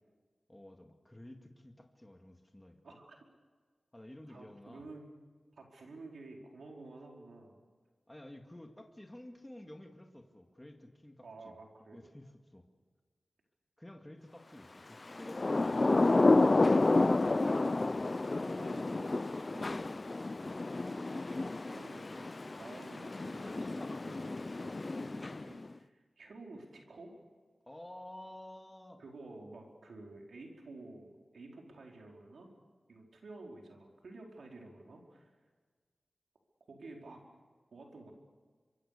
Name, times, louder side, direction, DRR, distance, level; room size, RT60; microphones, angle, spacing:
voice 1, 0.5-3.0 3.9-4.9 8.1-11.6 11.9-12.6 13.8-16.3 18.2-18.5 18.8-20.0 20.3-20.6 27.7-29.0, left 1 dB, 15° left, 3 dB, 2.2 m, -52 dB
voice 2, 2.8-3.2 4.3-5.1 5.6-7.6 11.2-12.0 18.6-19.9 20.9-27.1 29.0-32.5 32.9-35.3 36.7-37.2 37.7-38.1, right 2 dB, 90° right, 0 dB, 4.7 m, -51 dB
Thunder / Rain, 15.1-25.7, left 2 dB, 40° left, 0.6 m, -30 dB
25.0 x 23.5 x 6.9 m, 1.5 s
wide cardioid pair, 70°, 0 cm